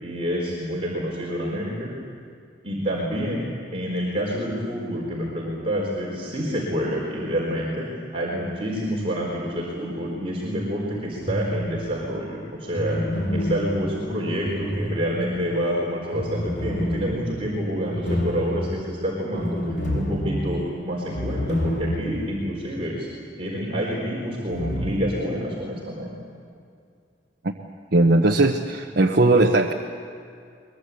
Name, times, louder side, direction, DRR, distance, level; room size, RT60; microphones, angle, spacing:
voice 1, 0.0-1.9 2.6-3.5 3.7-7.9 8.1-13.0 13.3-19.6 19.9-23.1 23.4-26.2, equal, 30° right, -4 dB, 4.2 m, -28 dB
sound 1, 11.2-11.9 12.7-15.5 16.1-22.3 22.6-22.7 24.5-24.9, equal, 65° left, 4.3 m, -28 dB
voice 2, 27.9-29.7, right 2 dB, 55° right, 0 dB, 1.1 m, -18 dB
23.0 x 22.0 x 8.4 m, 2.3 s
head